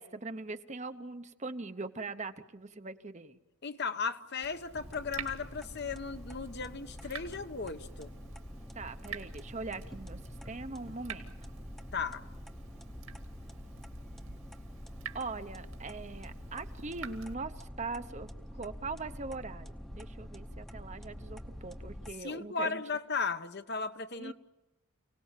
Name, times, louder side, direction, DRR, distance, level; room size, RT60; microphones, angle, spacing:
voice 1, 0.0-3.4 8.7-11.4 15.1-18.3 18.6-19.7 19.9-22.8 24.2-24.3, right 3 dB, 30° right, 10 dB, 0.9 m, -41 dB
voice 2, 3.6-8.1 11.9-12.2 22.2-24.3, left 5 dB, 50° left, 9 dB, 1.0 m, -36 dB
Water tap faucet / Drip, 4.4-17.3, right 5 dB, 65° right, 2.2 m, -49 dB
sound 1, 4.7-22.1, equal, ahead, 0.9 m, -46 dB
29.5 x 18.5 x 7.4 m, 1.0 s
head